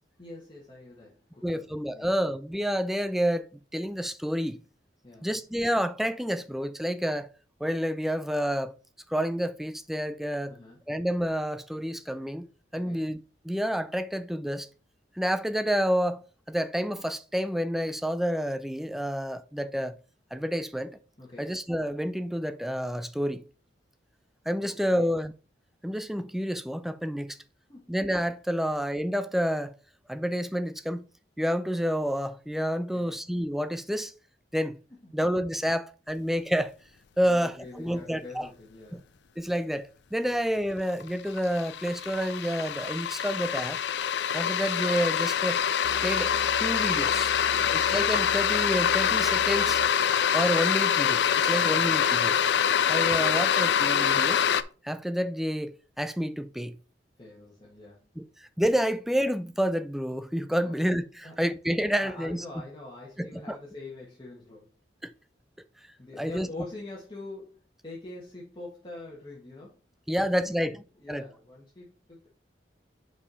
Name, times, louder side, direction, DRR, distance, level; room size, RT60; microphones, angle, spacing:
voice 1, 0.2-2.1 5.0-5.3 10.5-10.8 12.7-13.1 21.2-21.6 24.6-25.1 27.7-27.9 32.9-33.2 35.0-35.2 37.2-39.1 40.3-40.4 47.5-47.9 51.5-51.8 52.8-53.1 57.2-58.2 60.6-60.8 61.2-61.3 62.0-64.7 66.0-69.9 70.1-72.3, left 2 dB, 25° left, 1.4 m, -45 dB
voice 2, 1.4-4.6 5.2-7.3 7.6-8.7 9.1-10.5 10.9-12.5 12.7-13.2 13.4-14.7 15.2-16.2 16.5-20.0 20.3-21.0 21.4-23.4 24.5-25.3 25.8-27.4 27.9-29.7 30.1-31.1 31.4-34.1 34.5-34.8 35.1-36.7 37.2-38.5 38.9-39.0 39.4-43.8 44.3-45.6 46.0-46.3 46.6-47.3 47.7-49.8 50.3-52.4 52.9-54.5 54.8-56.8 58.2-62.4 63.2-63.6 65.0-65.1 66.2-66.5 70.1-70.8 71.1-71.3, equal, ahead, 0.4 m, -29 dB
sound 1, 40.5-40.6 40.9-54.6, left 8 dB, 65° left, 0.4 m, -25 dB
sound 2, 45.8-49.9, right 3 dB, 85° right, 0.5 m, -43 dB
5.5 x 4.7 x 4.8 m
head